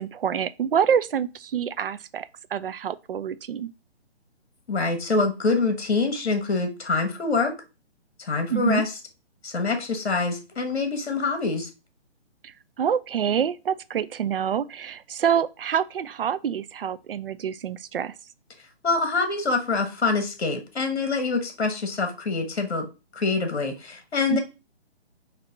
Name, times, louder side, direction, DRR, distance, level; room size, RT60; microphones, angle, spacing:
voice 1, 0.0-3.7 8.5-8.8 12.4-18.1 24.3-24.4, right 8 dB, 55° right, 0.4 m, -26 dB
voice 2, 4.7-7.5 8.2-8.9 9.4-11.7 18.8-22.9 23.1-24.4, left 3 dB, 65° left, 1.3 m, -25 dB
4.5 x 2.8 x 4.0 m
figure-of-eight pair, 145°, 34 cm